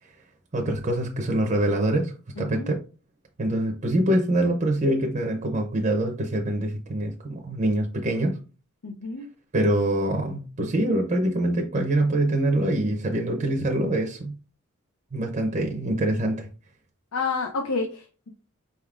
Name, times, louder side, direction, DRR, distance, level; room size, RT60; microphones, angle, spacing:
voice 1, 0.5-2.8 3.4-8.4 9.5-14.3 15.1-16.5, right 1 dB, 35° right, 0.6 m, -24 dB
voice 2, 2.4-2.7 8.8-9.3 17.1-18.3, left 4 dB, 90° left, 0.6 m, -29 dB
5.1 x 3.5 x 2.4 m
head